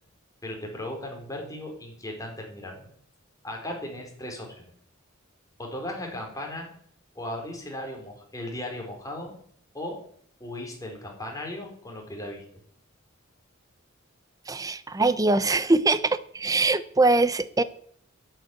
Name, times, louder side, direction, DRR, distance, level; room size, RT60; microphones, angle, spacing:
voice 1, 0.4-2.9 3.4-4.7 5.6-6.7 7.1-9.3 9.7-10.0 10.4-12.4, left 1 dB, 15° left, 1 dB, 4.1 m, -36 dB
voice 2, 14.5-17.6, right 3 dB, 15° right, 15 dB, 0.6 m, -22 dB
11.0 x 8.2 x 9.5 m, 0.62 s
head